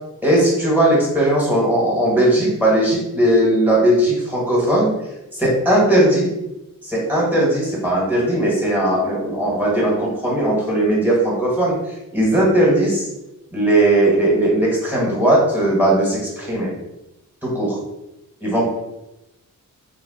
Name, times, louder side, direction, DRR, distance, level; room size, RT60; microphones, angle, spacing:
voice 1, 0.2-4.9 5.3-6.3 6.8-11.7 12.1-13.1 13.5-16.7 17.4-17.7 18.4-18.6, right 1 dB, 5° right, -5 dB, 1.3 m, -18 dB
2.9 x 2.1 x 4.0 m, 0.94 s
wide cardioid pair, 85°, 33 cm